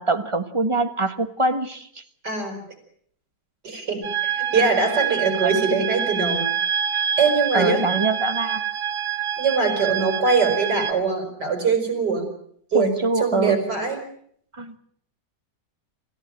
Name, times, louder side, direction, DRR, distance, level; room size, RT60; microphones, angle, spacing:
voice 1, 0.0-2.0 5.4-5.5 6.9-7.0 7.5-8.6 12.7-13.6 14.5-14.8, right 2 dB, 20° right, 8 dB, 1.3 m, -24 dB
voice 2, 2.2-2.6 3.6-6.4 7.2-7.8 9.4-12.3 12.7-14.0, right 4 dB, 70° right, 5 dB, 6.0 m, -22 dB
sound 1, 4.0-10.9, right 8 dB, 90° right, 1.9 m, -26 dB
27.0 x 15.0 x 9.0 m, 0.66 s
omnidirectional pair, 1.9 m